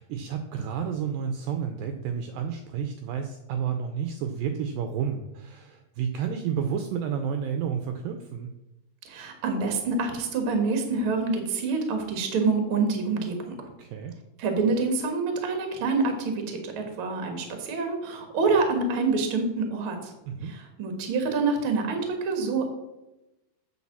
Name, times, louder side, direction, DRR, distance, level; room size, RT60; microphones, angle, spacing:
voice 1, 0.0-8.5 13.8-14.2 20.3-20.5, right 7 dB, 80° right, 6 dB, 2.1 m, -31 dB
voice 2, 9.1-13.7 14.4-20.1 20.4-22.7, right 4 dB, 55° right, 4 dB, 1.5 m, -27 dB
8.3 x 4.6 x 7.1 m, 0.98 s
omnidirectional pair, 4.4 m